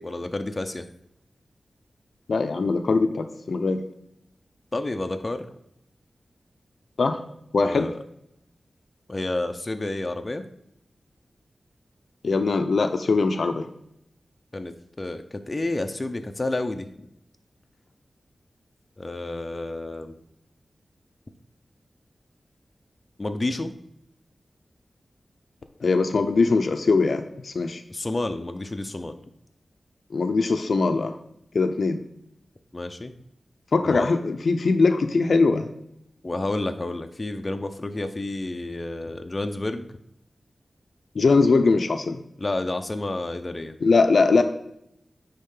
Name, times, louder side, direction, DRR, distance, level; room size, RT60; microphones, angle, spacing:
voice 1, 0.0-0.9 4.7-5.5 7.6-7.9 9.1-10.4 14.5-17.1 19.0-20.1 23.2-23.7 27.9-29.2 32.7-33.1 33.8-34.1 36.2-39.9 42.4-43.8, left 2 dB, 35° left, 6 dB, 0.6 m, -30 dB
voice 2, 2.3-3.8 7.0-7.2 7.5-7.9 12.2-13.7 25.8-27.8 30.1-31.2 31.5-32.0 33.7-35.7 41.1-42.2 43.8-44.4, left 3 dB, 70° left, 8 dB, 0.6 m, -21 dB
9.9 x 3.7 x 3.8 m, 0.77 s
wide cardioid pair, 70°, 0 cm